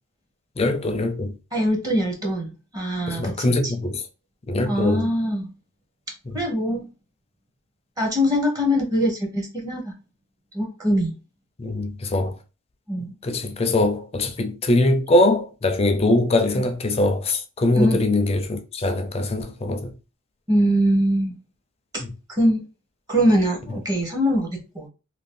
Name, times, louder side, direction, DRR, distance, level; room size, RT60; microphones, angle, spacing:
voice 1, 0.6-1.4 3.1-4.0 4.5-5.1 6.3-6.4 11.6-12.4 13.2-19.9 22.0-22.1, left 2 dB, 30° left, 0.4 m, -22 dB
voice 2, 1.5-3.4 4.7-5.5 6.3-6.8 8.0-9.9 10.5-11.1 12.9-13.1 16.6-16.7 17.7-18.0 20.5-21.4 21.9-22.0 22.3-22.6 23.1-24.9, equal, 20° right, 0.7 m, -22 dB
2.6 x 2.3 x 3.5 m
head